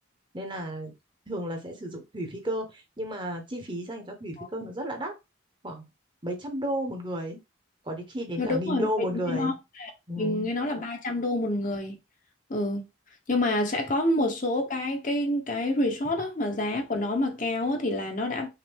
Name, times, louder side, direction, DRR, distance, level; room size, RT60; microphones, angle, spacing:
voice 1, 0.3-0.9 1.3-5.1 5.6-5.8 6.2-7.4 7.8-9.6 10.1-10.5, equal, 25° right, 1.1 m, -33 dB
voice 2, 8.4-9.9 10.2-12.0 12.5-12.9 13.3-18.5, left 1 dB, 40° left, 0.9 m, -28 dB
5.8 x 2.6 x 3.5 m
head